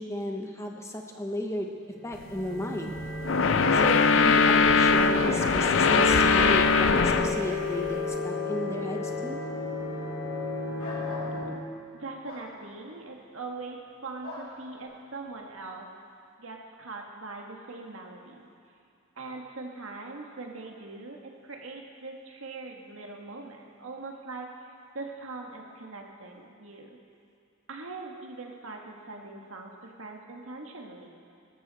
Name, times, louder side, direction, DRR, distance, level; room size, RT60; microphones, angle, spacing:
voice 1, 0.0-1.7 2.0-3.0 3.7-9.4, left 1 dB, 15° left, 2 dB, 0.8 m, -34 dB
sound 1, 1.9-11.4, left 3 dB, 35° left, 3.3 m, -33 dB
sound 2, 3.0-7.5, left 4 dB, 60° left, 0.5 m, -21 dB
sound 3, 10.8-11.3 12.2-12.5 14.2-14.5, left 1 dB, 85° left, 3.1 m, -41 dB
voice 2, 11.9-15.9 16.4-18.5 19.2-27.0 27.7-31.1, right 3 dB, 70° right, 1 dB, 1.6 m, -41 dB
20.5 x 13.0 x 4.2 m, 2.4 s
head